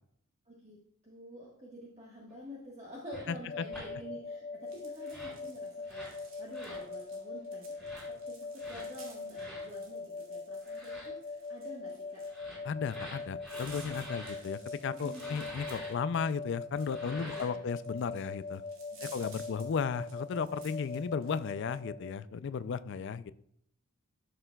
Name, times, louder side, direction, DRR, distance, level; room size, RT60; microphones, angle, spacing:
voice 1, 0.5-0.8 1.0-7.7 8.1-12.2 15.0-15.4 17.0-17.7 19.0-19.4, equal, 30° right, -4 dB, 1.3 m, -49 dB
sound 1, 3.1-3.3 3.7-3.9 5.0-5.4 5.8-6.2 6.5-6.8 7.7-8.1 8.6-8.9 9.3-9.6 10.6-11.1 12.2-14.4 15.1-15.9 16.8-17.6, equal, ahead, 3.4 m, -47 dB
voice 2, 3.3-3.6 12.6-18.6 19.0-23.3, left 6 dB, 55° left, 15 dB, 0.3 m, -35 dB
sound 2, 3.5-22.1, left 3 dB, 75° left, 1.1 m, -42 dB
sound 3, 4.7-21.8, right 4 dB, 65° right, 2.2 m, -57 dB
12.5 x 6.6 x 2.3 m, 0.72 s
head